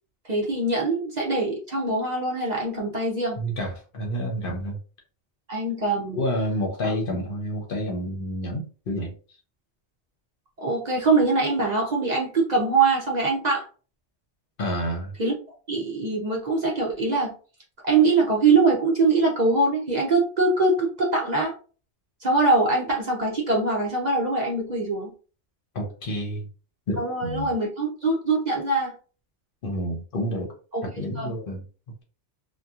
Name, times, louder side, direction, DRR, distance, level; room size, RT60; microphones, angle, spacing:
voice 1, 0.2-3.4 5.5-6.2 6.8-6.9 10.6-13.7 15.2-15.3 15.7-17.3 17.8-21.5 22.2-25.1 27.0-28.9 30.7-30.9 31.2-31.3, right 3 dB, 45° right, -2 dB, 0.6 m, -23 dB
voice 2, 3.4-4.8 6.1-9.1 14.6-15.1 25.7-26.5 26.9-27.5 29.6-30.5 30.8-31.6, equal, 55° left, 1 dB, 0.8 m, -29 dB
2.8 x 2.2 x 2.3 m, 0.37 s
omnidirectional pair, 1.2 m